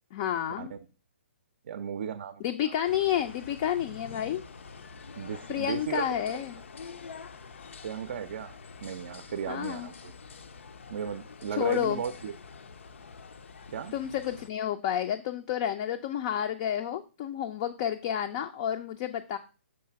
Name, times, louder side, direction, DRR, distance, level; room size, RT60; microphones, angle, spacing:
voice 1, 0.1-0.7 2.4-4.4 5.5-6.6 9.5-9.9 11.6-12.0 13.9-19.4, left 10 dB, 30° left, 7 dB, 0.4 m, -30 dB
voice 2, 1.6-2.9 5.2-6.1 7.8-10.1 10.9-12.3 13.7-13.9, right 8 dB, 55° right, 11 dB, 0.5 m, -36 dB
sound 1, 2.8-14.5, left 5 dB, 80° left, 0.6 m, -47 dB
6.4 x 3.3 x 5.6 m, 0.34 s
hypercardioid pair, 155°, 7 cm